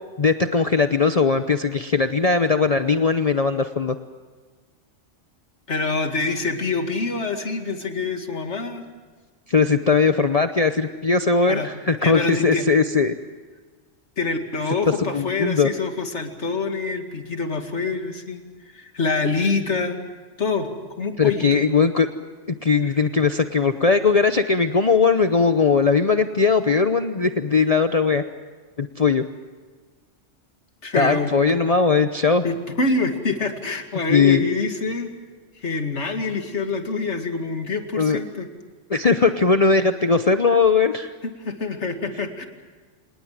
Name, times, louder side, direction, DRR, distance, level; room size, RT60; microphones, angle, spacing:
voice 1, 0.2-4.0 9.5-13.2 15.0-15.7 21.2-22.1 22.6-28.2 28.8-29.2 30.9-32.4 34.1-34.4 38.0-38.2 38.9-41.1, left 4 dB, 35° left, 9 dB, 0.9 m, -19 dB
voice 2, 5.7-8.8 11.5-11.7 12.0-12.7 14.2-18.4 18.7-20.0 20.4-20.7 21.0-21.6 30.8-31.3 32.4-35.1 35.6-38.5 41.4-42.5, left 3 dB, 75° left, 5 dB, 2.6 m, -25 dB
27.0 x 19.5 x 7.5 m, 1.4 s
omnidirectional pair, 1.2 m